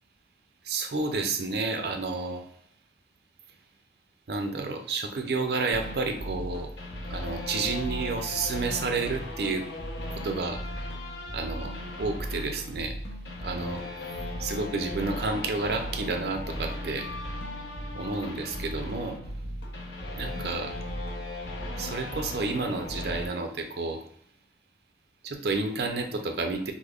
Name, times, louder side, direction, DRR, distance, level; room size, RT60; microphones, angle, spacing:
voice 1, 0.6-2.4 4.3-6.7 7.0-9.7 10.1-10.6 11.3-12.9 13.4-13.8 14.4-17.1 17.9-19.2 20.1-20.7 21.8-24.0 25.2-26.7, right 3 dB, 65° right, 5 dB, 0.5 m, -30 dB
sound 1, 5.7-23.3, left 1 dB, 85° left, 0.7 m, -36 dB
5.0 x 2.1 x 2.3 m, 0.68 s
head